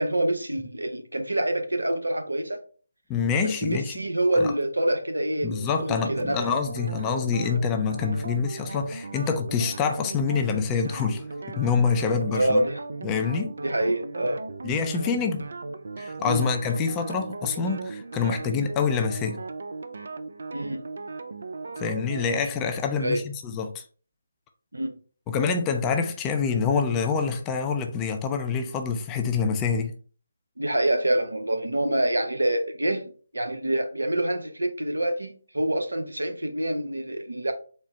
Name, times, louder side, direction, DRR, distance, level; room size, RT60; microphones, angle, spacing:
voice 1, 0.0-2.6 3.4-6.4 12.3-12.8 13.6-14.4 16.2-16.5 20.5-20.8 23.0-23.2 24.7-24.9 30.6-33.0 33.3-37.5, right 1 dB, 80° right, 6 dB, 0.8 m, -26 dB
voice 2, 3.1-3.9 4.4-4.5 5.4-11.2 11.5-12.6 13.0-13.5 14.6-15.5 16.0-19.4 21.8-23.8 25.3-29.9, left 5 dB, 15° left, 5 dB, 0.4 m, -26 dB
sound 1, 5.8-22.4, right 3 dB, 60° right, 0.4 m, -37 dB
4.3 x 2.0 x 3.9 m, 0.41 s
figure-of-eight pair, 150°, 0 cm